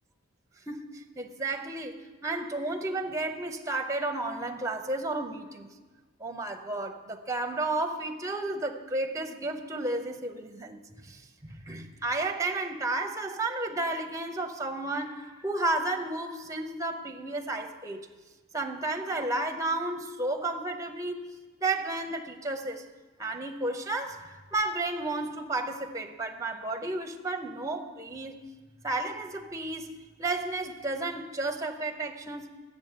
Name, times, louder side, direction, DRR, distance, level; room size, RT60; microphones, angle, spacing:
voice 1, 0.7-5.7 6.2-18.1 18.5-22.9 23.2-28.4 28.8-32.5, right 2 dB, 15° right, 0.7 m, -32 dB
11.0 x 8.3 x 6.7 m
head